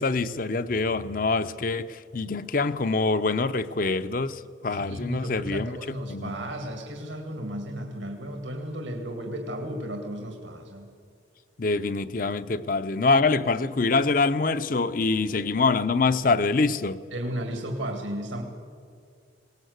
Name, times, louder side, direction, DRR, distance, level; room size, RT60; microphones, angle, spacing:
voice 1, 0.0-6.5 11.6-17.0, left 3 dB, 45° left, 0.6 m, -25 dB
voice 2, 4.7-10.9 17.1-18.4, right 1 dB, 80° right, 2.2 m, -34 dB
20.5 x 18.5 x 8.0 m
head